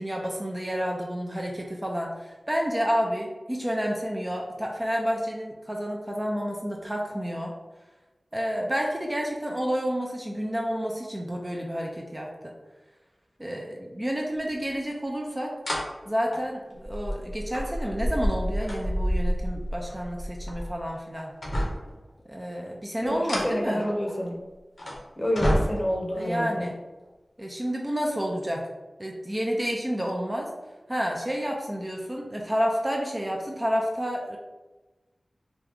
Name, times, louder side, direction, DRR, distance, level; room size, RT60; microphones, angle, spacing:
voice 1, 0.0-7.5 8.3-12.3 13.4-15.5 16.1-21.3 22.3-23.8 26.2-26.7 27.4-28.7 29.0-30.5 30.9-34.4, equal, 20° right, 0 dB, 0.5 m, -30 dB
sound 1, 14.7-14.8 15.6-15.8 16.3-20.8 21.2-22.0 23.0-24.2 24.8-25.0 25.4-26.1 27.0-27.1, equal, 70° left, 0.8 m, -29 dB
voice 2, 23.0-24.4 25.2-26.7, equal, 30° left, -1 dB, 0.8 m, -28 dB
3.0 x 2.4 x 3.4 m, 1.1 s
wide cardioid pair, 45°, 0 cm